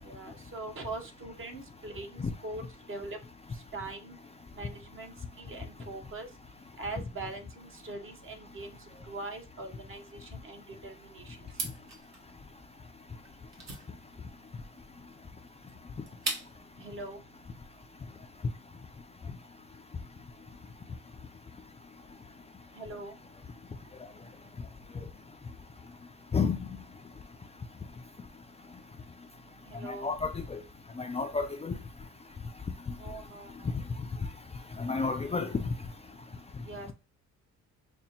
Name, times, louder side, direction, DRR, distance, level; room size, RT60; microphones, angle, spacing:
voice 1, 0.0-3.2 3.5-4.2 4.6-6.3 6.8-8.8 9.1-11.4 16.8-17.2 22.7-23.2 29.7-30.1 33.0-33.7 36.7-36.9, right 2 dB, 45° right, 1.0 m, -42 dB
sound 1, 11.5-16.8, right 3 dB, 60° right, 1.3 m, -40 dB
voice 2, 30.0-30.6 31.0-31.8 34.8-35.5, left 4 dB, 20° left, 0.4 m, -30 dB
5.2 x 2.1 x 2.8 m
cardioid pair, 90°, 30 cm